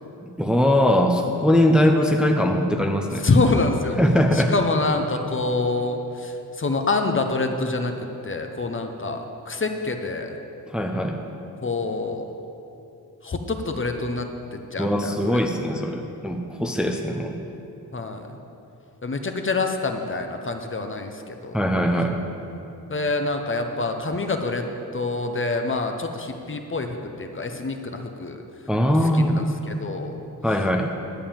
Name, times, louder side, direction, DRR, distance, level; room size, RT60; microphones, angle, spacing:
voice 1, 0.2-3.3 4.0-4.5 10.7-11.2 14.8-17.4 21.5-22.2 28.7-29.5 30.4-30.9, equal, ahead, 3 dB, 0.7 m, -21 dB
voice 2, 3.2-4.0 4.3-7.9 8.2-10.4 11.6-12.3 13.2-15.4 17.9-18.4 19.0-21.6 22.9-24.7 24.9-28.4 28.8-30.2, left 3 dB, 35° left, 5 dB, 0.9 m, -26 dB
11.5 x 5.5 x 8.7 m, 2.8 s
cardioid pair, 95°, 37 cm